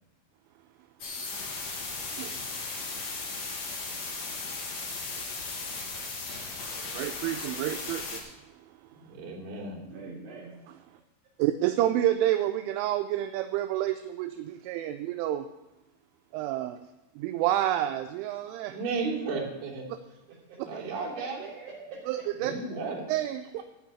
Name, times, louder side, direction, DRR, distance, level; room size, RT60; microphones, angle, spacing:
sound 1, 1.0-8.2, left 3 dB, 75° left, 1.5 m, -36 dB
voice 1, 2.1-2.4 6.9-8.5 11.4-15.5 16.3-16.8 17.2-18.8 22.1-22.5 23.1-23.6, right 13 dB, 85° right, 7 dB, 2.9 m, -29 dB
voice 2, 8.9-9.8 18.7-19.8 20.6-21.5 22.4-23.0, right 4 dB, 50° right, -6 dB, 4.4 m, -34 dB
voice 3, 9.8-10.5 20.5-22.0 22.4-23.2 23.6-23.7, right 4 dB, 65° right, -6 dB, 3.5 m, -45 dB
13.0 x 5.2 x 8.5 m, 1.0 s
omnidirectional pair, 5.8 m